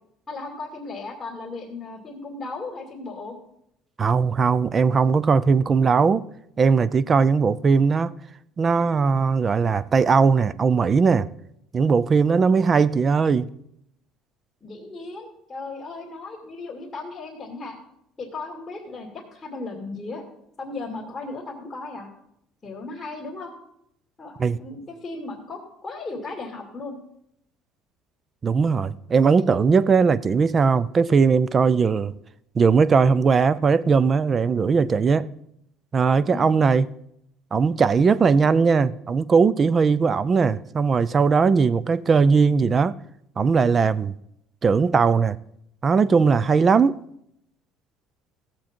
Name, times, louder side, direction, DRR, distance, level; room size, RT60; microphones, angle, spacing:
voice 1, 0.3-3.3 14.6-17.8 18.2-20.2 20.6-22.1 22.6-23.5 24.2-27.0 29.5-29.6 36.3-36.5, left 3 dB, 20° left, 2.4 m, -36 dB
voice 2, 4.0-6.2 6.6-8.1 8.6-11.3 11.7-13.5 24.4-24.6 28.4-32.1 32.6-35.3 35.9-36.9 37.5-42.9 43.4-44.1 44.6-45.4 45.8-47.0, right 5 dB, 25° right, 0.4 m, -19 dB
17.0 x 7.3 x 4.4 m
cardioid pair, 135°, 0 cm